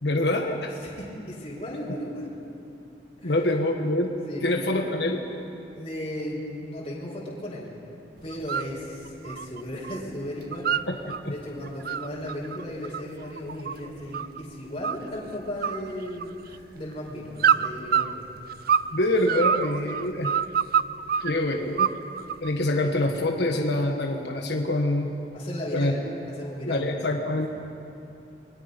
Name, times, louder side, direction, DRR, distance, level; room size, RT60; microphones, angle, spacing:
voice 1, 0.0-0.7 3.2-4.1 4.4-5.2 10.9-11.0 18.9-20.3 21.2-21.9 22.4-25.1 25.7-25.9 26.7-27.5, left 1 dB, 65° left, 2 dB, 1.5 m, -25 dB
voice 2, 0.7-2.3 3.2-3.4 4.2-4.5 5.7-7.7 8.2-10.7 11.3-18.3 19.8-19.9 21.1-21.3 25.3-26.8, left 1 dB, 30° left, -6 dB, 4.7 m, -36 dB
sound 1, 8.3-8.7 9.1-10.0 10.3-11.2 11.6-14.4 14.8-15.3 15.6-16.6 17.4-18.9 19.2-21.3 21.8-22.5, right 8 dB, 55° right, 0.5 m, -26 dB
30.0 x 21.5 x 5.4 m, 2.7 s
head